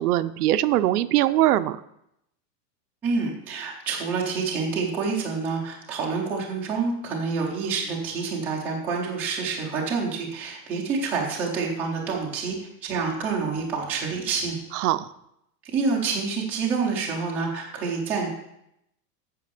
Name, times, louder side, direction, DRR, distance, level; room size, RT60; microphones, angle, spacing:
voice 1, 0.0-1.8 14.7-15.1, right 14 dB, 70° right, 13 dB, 0.7 m, -22 dB
voice 2, 3.0-14.6 15.7-18.3, right 4 dB, 5° right, -4 dB, 0.4 m, -27 dB
8.6 x 6.4 x 6.7 m, 0.80 s
supercardioid pair, 175°, 48 cm